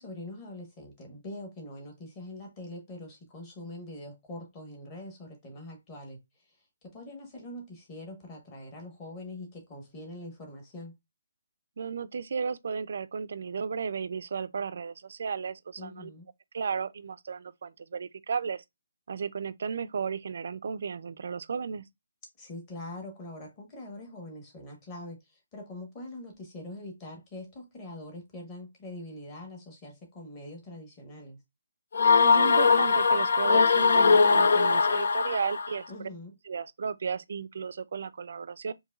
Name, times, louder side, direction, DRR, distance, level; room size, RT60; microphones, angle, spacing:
voice 1, 0.0-6.2 6.8-11.0 15.8-16.3 22.4-31.4 35.9-36.3, left 1 dB, 20° left, 1.1 m, -43 dB
voice 2, 11.8-16.1 16.5-18.6 19.1-21.8 32.2-35.9 36.5-38.7, right 6 dB, 50° right, 0.3 m, -34 dB
sound 1, 31.9-35.8, left 5 dB, 55° left, 0.3 m, -21 dB
4.7 x 2.6 x 2.3 m
hypercardioid pair, 170°, 0 cm